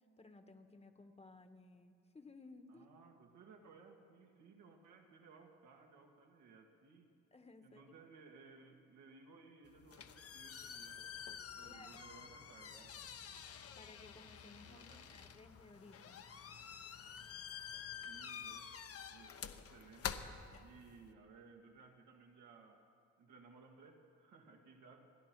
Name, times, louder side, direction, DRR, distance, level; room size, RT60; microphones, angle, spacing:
voice 1, 0.2-2.9 7.3-7.8 11.6-12.1 13.8-16.2, left 3 dB, 20° left, 7 dB, 1.2 m, -58 dB
voice 2, 2.7-7.1 7.6-11.0 11.5-13.0 14.7-15.2 18.0-18.8 19.1-22.9 23.2-25.2, right 4 dB, 80° right, 1 dB, 2.2 m, -60 dB
sound 1, 9.6-21.1, left 7 dB, 50° left, 1.0 m, -49 dB
29.5 x 10.5 x 4.6 m, 2.3 s
cardioid pair, 90°, 30 cm